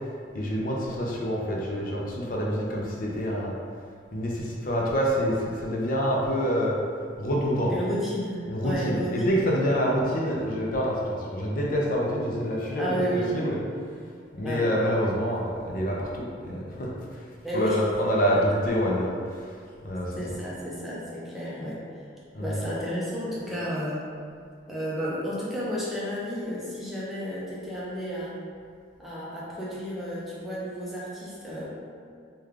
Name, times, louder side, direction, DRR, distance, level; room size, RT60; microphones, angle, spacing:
voice 1, 0.3-3.5 4.1-6.8 7.2-7.8 8.4-12.9 13.3-13.6 14.3-16.9 17.5-19.4 19.8-20.4 22.3-22.6, equal, 45° left, -3 dB, 0.4 m, -27 dB
voice 2, 7.7-9.4 12.8-13.3 14.4-14.7 17.4-17.8 18.3-18.4 20.2-21.8 22.4-24.1 24.7-28.4 29.0-31.8, equal, ahead, -8 dB, 0.5 m, -32 dB
3.2 x 2.2 x 3.5 m, 2.2 s
head